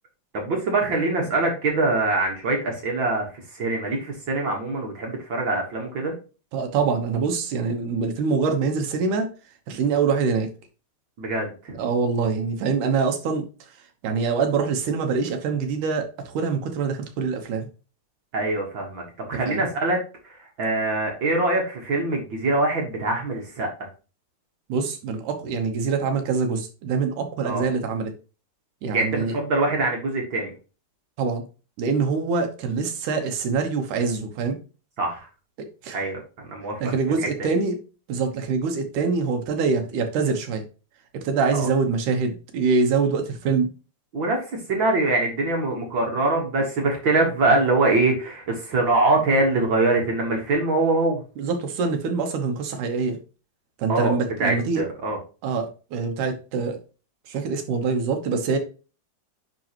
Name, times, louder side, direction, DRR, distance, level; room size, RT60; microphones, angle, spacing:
voice 1, 0.3-3.3 3.5-6.2 11.2-11.8 18.3-19.0 19.3-20.0 20.2-23.7 27.4-27.7 28.9-30.5 35.0-35.3 35.9-37.3 41.5-41.7 44.1-51.2 53.9-55.2, right 2 dB, 50° right, 1 dB, 1.7 m, -23 dB
voice 2, 6.5-9.3 9.7-10.5 11.7-13.4 14.0-17.7 19.5-19.7 24.7-28.1 28.8-29.3 31.2-31.4 31.8-34.6 35.6-36.0 36.8-37.8 38.1-40.6 41.1-43.7 51.4-53.2 53.8-54.8 55.4-56.8 57.3-58.6, right 5 dB, 85° right, 4 dB, 2.7 m, -24 dB
10.5 x 3.9 x 3.0 m, 0.33 s
omnidirectional pair, 3.5 m